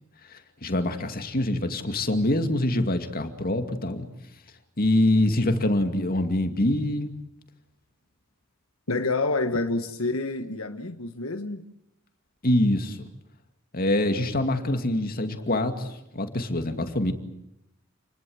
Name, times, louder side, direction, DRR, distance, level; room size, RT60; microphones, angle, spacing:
voice 1, 0.3-4.1 4.8-7.1 12.4-13.0 13.7-17.1, left 1 dB, 45° left, 7 dB, 2.4 m, -25 dB
voice 2, 8.9-11.6, left 3 dB, 85° left, 6 dB, 1.4 m, -28 dB
29.0 x 20.5 x 8.0 m, 0.81 s
head